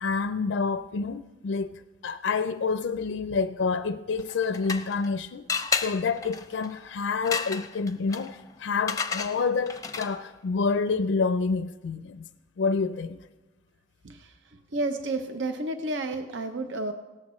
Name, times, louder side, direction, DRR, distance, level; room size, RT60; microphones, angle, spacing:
voice 1, 0.0-5.4 5.8-12.3 12.6-13.2, left 4 dB, 85° left, 0.4 m, -28 dB
sound 1, 4.2-5.1 5.5-10.3, left 5 dB, 20° left, 0.6 m, -33 dB
voice 2, 14.7-16.9, right 2 dB, 80° right, 0.6 m, -31 dB
17.5 x 13.5 x 3.1 m
head